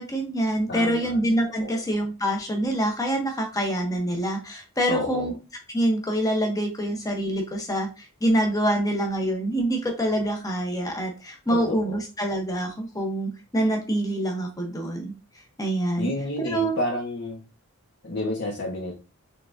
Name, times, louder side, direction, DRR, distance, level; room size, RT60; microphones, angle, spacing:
voice 1, 0.0-5.3 5.7-15.1 15.6-16.1 16.4-16.8, right 1 dB, 15° left, 1 dB, 0.9 m, -26 dB
voice 2, 0.7-1.2 1.6-1.8 4.9-5.3 11.5-12.0 16.0-17.4 18.0-18.9, left 1 dB, 50° left, -3 dB, 1.2 m, -30 dB
5.7 x 3.5 x 2.6 m, 0.30 s
head